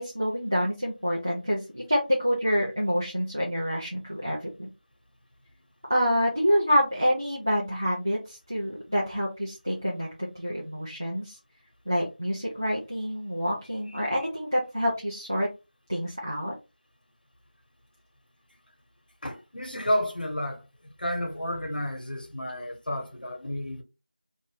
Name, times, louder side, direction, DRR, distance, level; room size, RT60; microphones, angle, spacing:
voice 1, 0.0-4.7 5.9-11.4 11.9-15.5 15.9-16.5, equal, 20° right, 0.5 m, -27 dB
voice 2, 19.2-23.8, equal, 75° left, 1.1 m, -31 dB
2.6 x 2.6 x 3.3 m
figure-of-eight pair, 180°, 5 cm